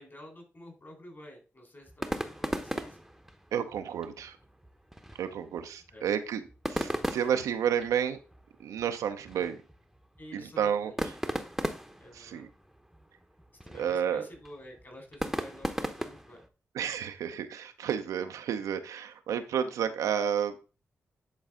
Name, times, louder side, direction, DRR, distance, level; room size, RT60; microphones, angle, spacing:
voice 1, 0.0-3.0 5.9-6.1 10.2-11.5 12.0-12.5 13.6-16.4, left 1 dB, 40° left, 3 dB, 4.0 m, -50 dB
sound 1, 1.9-16.5, equal, ahead, 0.9 m, -38 dB
voice 2, 3.5-4.4 5.2-8.2 8.6-9.6 10.3-10.9 12.1-12.5 13.8-14.3 16.7-20.5, right 8 dB, 80° right, 7 dB, 0.6 m, -31 dB
9.8 x 4.1 x 3.7 m, 0.33 s
supercardioid pair, 40°, 6 cm